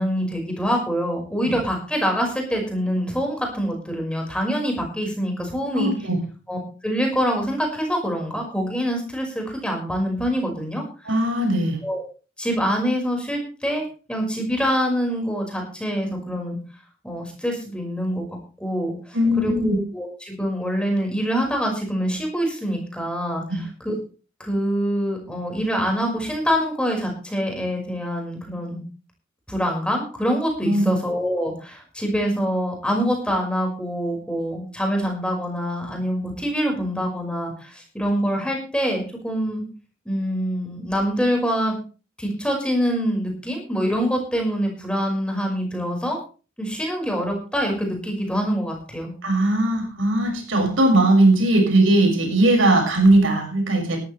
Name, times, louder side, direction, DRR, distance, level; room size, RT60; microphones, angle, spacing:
voice 1, 0.0-6.1 6.5-6.6 6.8-10.8 11.8-12.0 12.4-13.8 14.1-16.6 17.0-18.3 18.6-24.0 24.4-28.8 29.5-39.6 40.1-41.7 42.2-46.2 46.6-49.1, equal, 5° left, 1 dB, 5.4 m, -25 dB
voice 2, 5.7-6.2 11.1-11.8 19.1-19.7 23.5-23.6 30.6-30.9 49.2-54.0, right 1 dB, 90° right, 2 dB, 6.3 m, -19 dB
17.0 x 13.5 x 3.4 m, 0.36 s
head